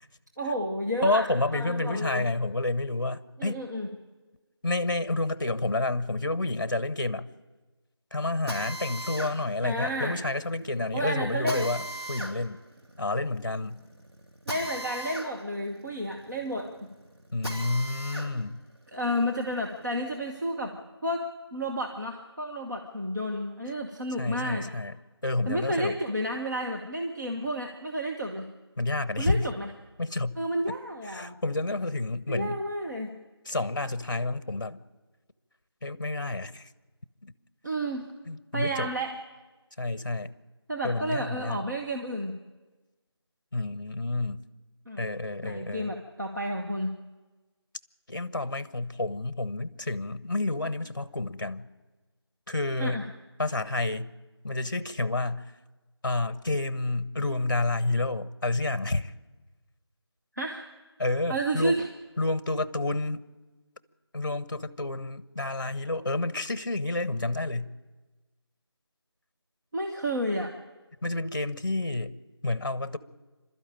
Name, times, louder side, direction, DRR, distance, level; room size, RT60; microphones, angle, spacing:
voice 1, 0.4-2.3 3.4-3.9 9.6-10.2 10.9-11.7 14.5-16.9 18.9-20.7 21.0-24.7 25.5-28.5 29.2-29.7 30.4-31.4 32.3-33.2 37.6-38.1 38.5-39.1 40.7-42.3 44.8-45.0 45.4-46.9 52.8-53.0 60.3-60.7 61.3-61.9 69.7-70.5, equal, 40° right, 1.5 m, -31 dB
voice 2, 1.0-3.6 4.6-7.3 8.1-12.6 13.0-13.8 17.3-18.6 24.2-24.9 25.2-26.0 28.8-29.5 30.0-30.4 30.7-30.8 31.0-32.6 33.5-34.8 35.8-36.7 37.2-37.3 38.3-38.9 39.8-40.3 40.8-41.6 43.5-44.4 45.0-45.9 48.1-51.7 52.5-53.0 53.4-54.1 54.4-55.4 56.0-59.1 61.0-61.8 62.2-63.2 64.1-67.7 71.0-72.1 72.4-73.0, left 2 dB, 45° left, 0.9 m, -29 dB
Drill, 8.5-18.3 18.7-20.4, right 1 dB, 65° right, 3.7 m, -40 dB
27.0 x 12.5 x 8.9 m
figure-of-eight pair, 180°, 14 cm